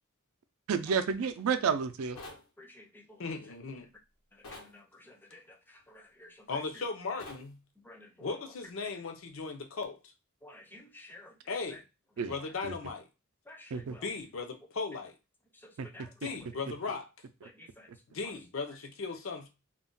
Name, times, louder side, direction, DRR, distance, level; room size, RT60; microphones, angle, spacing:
voice 1, 0.7-2.2 12.2-12.3 12.6-12.7 13.7-14.0, right 6 dB, 85° right, 0.4 m, -30 dB
sound 1, 2.2-2.5 4.4-4.7 7.2-7.5, left 2 dB, 85° left, 1.0 m, -46 dB
voice 2, 2.3-3.4 4.3-6.8 7.8-8.3 10.4-11.2 12.4-12.5 13.5-14.1 15.9-16.3 17.4-17.9, left 1 dB, 10° left, 0.4 m, -54 dB
voice 3, 3.2-3.9 6.5-7.6 8.2-10.0 11.5-11.8 12.3-13.1 14.0-15.2 16.2-17.1 18.1-19.5, left 4 dB, 65° left, 0.6 m, -37 dB
2.4 x 2.1 x 3.8 m
head